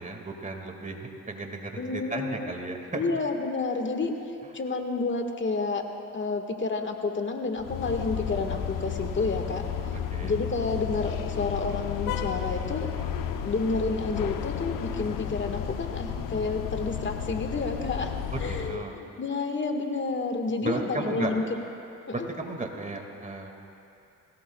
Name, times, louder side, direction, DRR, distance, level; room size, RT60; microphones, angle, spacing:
voice 1, 0.0-3.2 9.9-10.4 18.3-19.0 20.6-21.3 22.1-23.5, right 2 dB, 25° right, 3 dB, 2.1 m, -34 dB
voice 2, 1.8-2.5 2.9-4.1 4.5-5.8 6.1-9.6 10.2-12.9 13.4-18.1 18.4-21.6 22.1-22.3, left 3 dB, 35° left, 4 dB, 1.7 m, -30 dB
sound 1, 7.6-18.8, left 8 dB, 75° left, 0.9 m, -33 dB
21.5 x 17.5 x 2.3 m, 2.7 s
supercardioid pair, 65°, 33 cm